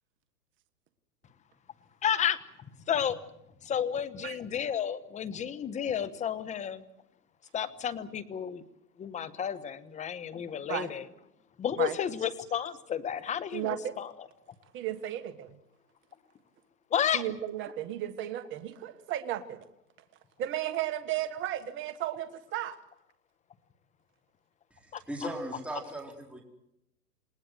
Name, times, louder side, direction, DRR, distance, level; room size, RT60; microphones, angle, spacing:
voice 1, 2.0-2.4 2.9-3.2 3.6-6.8 7.5-8.6 9.0-11.1 11.6-14.3 16.9-17.2 24.9-25.0, left 8 dB, 15° left, 14 dB, 1.3 m, -31 dB
voice 2, 13.5-13.9 14.7-15.5 17.1-19.6 20.4-22.7, right 12 dB, 25° right, 11 dB, 1.6 m, -34 dB
voice 3, 25.1-26.4, right 1 dB, 5° right, 0 dB, 4.4 m, -37 dB
28.0 x 19.5 x 8.0 m, 0.83 s
hypercardioid pair, 135°, 47 cm